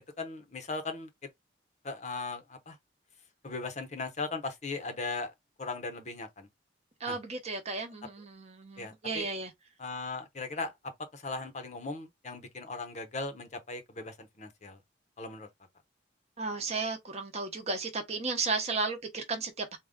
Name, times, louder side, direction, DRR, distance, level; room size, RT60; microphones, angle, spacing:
voice 1, 0.2-1.1 1.8-2.8 3.4-5.3 5.6-6.5 7.1-7.2 8.8-9.3 9.8-10.7 11.1-14.8 15.2-15.5, left 3 dB, 35° left, 0.7 m, -38 dB
voice 2, 7.0-9.5 16.4-19.8, right 4 dB, 35° right, 0.8 m, -34 dB
3.7 x 2.3 x 3.5 m
head